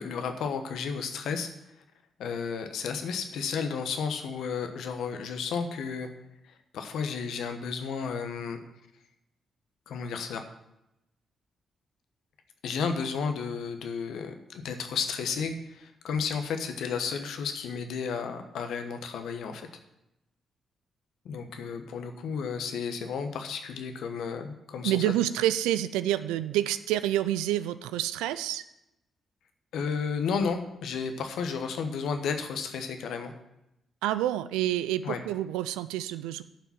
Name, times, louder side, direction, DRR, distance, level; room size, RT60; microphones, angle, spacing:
voice 1, 0.0-1.5 2.2-6.1 6.4-8.6 9.9-10.4 12.6-19.7 21.2-25.0 29.7-33.3 35.0-35.2, left 6 dB, 70° left, 7 dB, 1.1 m, -32 dB
voice 2, 24.8-28.6 34.0-36.4, right 13 dB, 80° right, 13 dB, 0.4 m, -28 dB
10.0 x 5.8 x 7.2 m, 0.86 s
hypercardioid pair, 45°, 0 cm